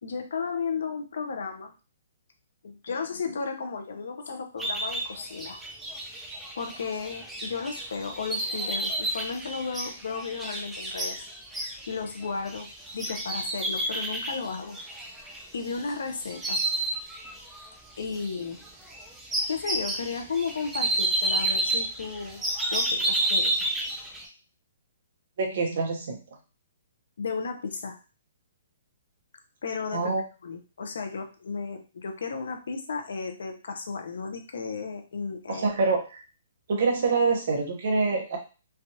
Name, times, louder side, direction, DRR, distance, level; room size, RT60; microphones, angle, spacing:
voice 1, 0.0-1.7 2.6-5.6 6.6-11.2 11.9-12.7 12.9-14.8 15.5-16.6 18.0-18.6 19.5-22.4 22.7-23.5 27.2-28.0 29.6-30.1 30.4-35.7, left 5 dB, 65° left, 5 dB, 0.6 m, -34 dB
sound 1, 4.6-15.9 16.2-17.7 18.0-24.2, right 1 dB, 5° right, 0.4 m, -30 dB
voice 2, 25.4-26.2 29.9-30.2 35.5-36.2 36.7-38.4, right 4 dB, 45° right, 2 dB, 0.8 m, -25 dB
3.3 x 2.4 x 2.7 m, 0.33 s
hypercardioid pair, 180°, 0 cm